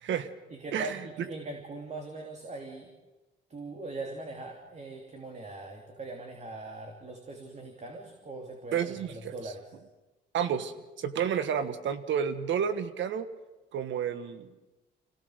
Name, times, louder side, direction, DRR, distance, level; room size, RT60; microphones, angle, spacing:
voice 1, 0.5-2.9 3.5-9.7, right 2 dB, 35° right, 2 dB, 3.1 m, -41 dB
voice 2, 8.7-9.3 10.3-13.3 13.7-14.5, right 8 dB, 70° right, 12 dB, 1.5 m, -30 dB
26.0 x 17.0 x 6.5 m, 1.1 s
cardioid pair, 90°, 20 cm